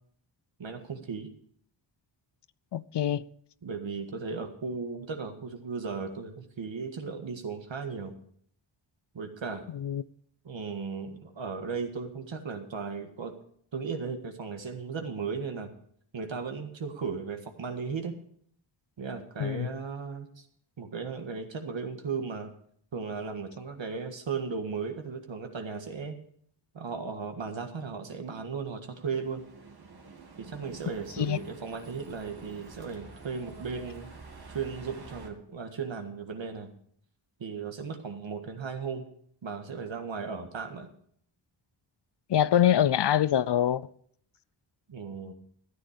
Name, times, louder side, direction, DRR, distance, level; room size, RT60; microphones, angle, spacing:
voice 1, 0.6-1.3 3.6-8.1 9.1-9.6 10.4-13.4 13.7-15.7 16.1-18.1 19.0-20.5 20.8-22.5 22.9-26.2 26.7-29.4 30.4-34.1 34.5-36.7 37.4-39.0 39.4-40.9 44.9-45.3, right 5 dB, 65° right, 1.8 m, -36 dB
voice 2, 2.7-3.2 9.7-10.0 19.4-19.7 31.2-31.4 42.3-43.8, left 10 dB, 60° left, 0.5 m, -24 dB
sound 1, 28.9-35.3, right 4 dB, 50° right, 1.8 m, -48 dB
14.0 x 9.9 x 5.1 m
wide cardioid pair, 130°, 49 cm